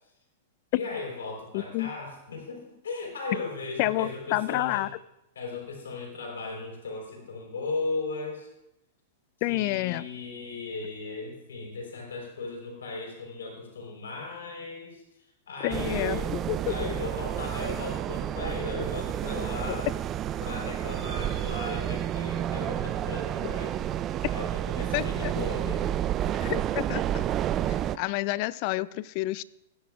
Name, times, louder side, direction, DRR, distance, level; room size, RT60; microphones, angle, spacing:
voice 1, 0.7-4.9 5.4-8.5 9.5-16.4 16.7-19.9 20.4-23.8 24.3-25.9, left 3 dB, 90° left, 0 dB, 4.0 m, -37 dB
voice 2, 1.5-1.9 3.8-4.9 9.4-10.0 15.6-16.9 19.7-19.8 24.9-25.4 26.4-27.2 27.7-29.4, left 18 dB, 50° left, 19 dB, 0.3 m, -29 dB
sound 1, 15.7-28.0, right 11 dB, 30° right, 0.3 m, -30 dB
17.0 x 10.0 x 2.4 m, 0.86 s
hypercardioid pair, 125°, 0 cm